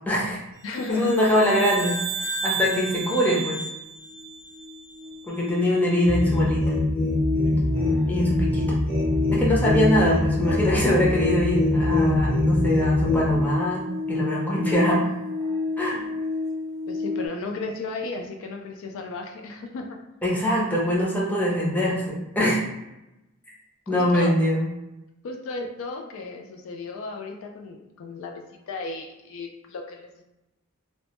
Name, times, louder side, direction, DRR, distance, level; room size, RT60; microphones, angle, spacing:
voice 1, 0.1-0.4 0.9-2.0 2.2-3.6 5.3-6.7 8.1-8.7 9.3-13.8 14.1-15.0 15.8-16.1 20.2-22.6 23.9-24.7, equal, 10° left, -5 dB, 0.5 m, -23 dB
voice 2, 0.6-1.1 7.3-7.7 16.9-20.0 23.9-24.3 25.2-30.2, left 3 dB, 65° left, 3 dB, 0.3 m, -35 dB
sound 1, 0.7-5.2, right 4 dB, 40° right, 0.6 m, -33 dB
sound 2, 3.7-3.8 4.1-17.3, left 3 dB, 75° right, 0.6 m, -31 dB
sound 3, 6.0-13.4, left 1 dB, 40° left, 0.7 m, -23 dB
2.1 x 2.0 x 2.9 m, 0.95 s
head